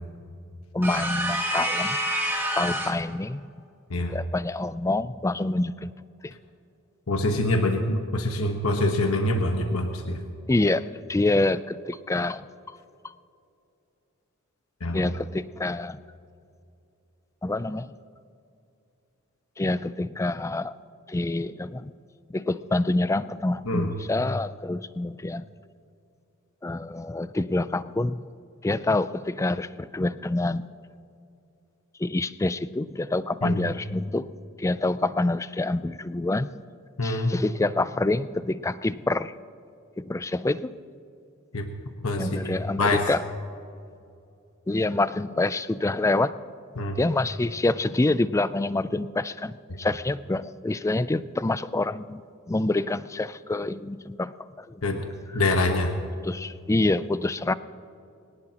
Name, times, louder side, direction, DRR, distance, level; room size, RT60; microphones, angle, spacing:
voice 1, 0.7-2.0 2.6-3.5 4.1-5.9 6.2-6.3 10.5-12.5 13.0-13.1 14.9-16.0 17.4-17.9 19.6-20.8 21.1-21.9 22.3-25.5 26.6-28.2 28.6-30.6 32.0-34.3 34.6-36.5 37.0-39.3 40.0-40.8 42.2-43.2 44.7-46.4 47.0-52.2 52.5-54.8 56.2-57.5, left 2 dB, 15° left, 15 dB, 0.4 m, -26 dB
sound 1, 0.8-3.1, equal, 10° right, 1.8 m, -27 dB
voice 2, 7.1-10.2 14.8-15.0 23.7-23.9 33.4-33.6 37.0-37.3 41.5-41.7 42.0-43.0 46.8-47.0 54.8-55.0 55.3-55.9, left 2 dB, 75° left, 4 dB, 1.2 m, -25 dB
22.0 x 18.5 x 2.9 m, 2.6 s
head